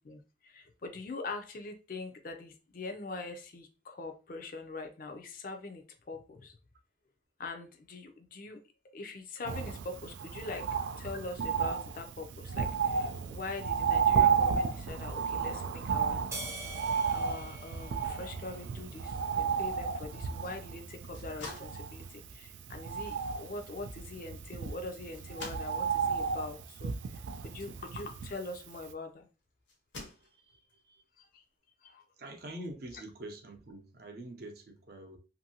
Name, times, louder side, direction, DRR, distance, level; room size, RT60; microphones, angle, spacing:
voice 1, 0.0-6.6 7.4-8.6 8.9-10.7 11.0-16.2 17.1-29.3 31.2-31.4 31.8-32.0, left 3 dB, 50° left, 6 dB, 0.4 m, -43 dB
Bird, 9.5-28.6 28.9-29.0, right 6 dB, 90° right, 0.3 m, -33 dB
sound 1, 16.3-18.9, right 2 dB, 15° right, 0.4 m, -44 dB
sound 2, 21.1-29.0 29.7-30.7, left 2 dB, 85° left, 0.9 m, -50 dB
voice 2, 30.2-31.0 32.2-35.2, right 1 dB, 55° right, 3 dB, 0.6 m, -46 dB
2.7 x 2.6 x 2.7 m, 0.33 s
head